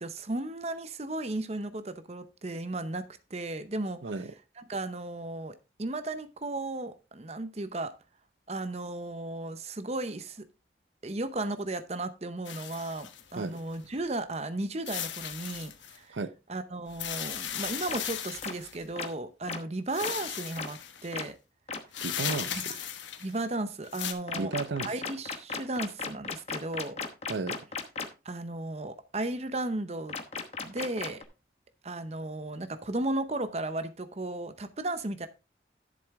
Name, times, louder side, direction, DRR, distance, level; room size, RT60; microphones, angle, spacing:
voice 1, 0.0-3.0 3.3-4.1 4.6-7.9 8.5-10.5 11.0-16.2 16.5-21.4 22.7-22.8 23.2-24.5 24.9-27.0 28.2-30.2 30.6-31.2 31.8-35.3, right 2 dB, 35° right, 0.7 m, -35 dB
voice 2, 4.0-4.3 13.4-13.6 16.1-16.3 22.0-22.6 24.3-24.9 27.3-27.6, right 3 dB, 80° right, 0.7 m, -33 dB
sound 1, 12.4-13.7 14.9-16.0 16.9-18.8 19.9-21.1 21.9-23.4 23.8-24.1, left 10 dB, 85° left, 1.2 m, -37 dB
sound 2, 17.9-18.0 18.4-18.5 19.0-19.1 19.5-19.6 20.0-20.1 20.6-20.7 21.1-21.2 21.7-21.8 22.3-22.4 24.3-28.1 30.1-31.2, left 5 dB, 35° left, 1.0 m, -35 dB
11.0 x 7.1 x 3.5 m
head